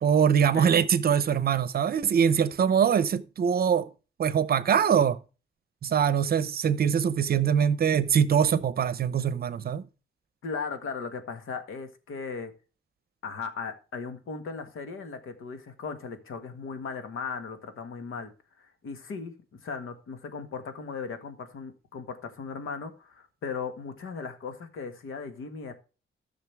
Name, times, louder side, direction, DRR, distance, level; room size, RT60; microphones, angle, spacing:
voice 1, 0.0-3.9 4.2-5.2 5.8-9.8, right 8 dB, 50° right, 0.7 m, -23 dB
voice 2, 10.4-12.5 13.2-18.3 18.6-19.3 19.6-25.7, left 5 dB, 90° left, 1.8 m, -37 dB
14.0 x 6.5 x 3.5 m
wide cardioid pair, 170°, 21 cm